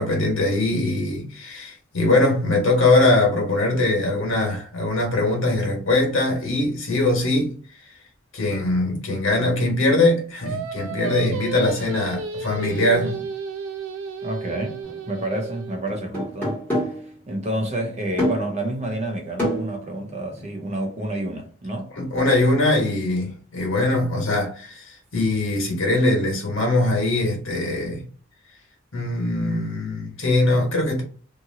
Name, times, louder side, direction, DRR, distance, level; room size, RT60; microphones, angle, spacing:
voice 1, 0.0-7.5 8.3-13.2 21.9-28.0 28.9-31.0, left 2 dB, 75° left, 1.3 m, -21 dB
Singing, 10.4-15.8, right 5 dB, 75° right, 0.5 m, -32 dB
voice 2, 14.2-14.8 15.1-16.8 17.3-21.9, right 1 dB, 35° right, 0.6 m, -29 dB
sound 1, 14.8-15.0 15.9-17.1 18.2-18.6 19.4-20.7, equal, 10° left, 1.5 m, -27 dB
2.8 x 2.6 x 2.6 m
head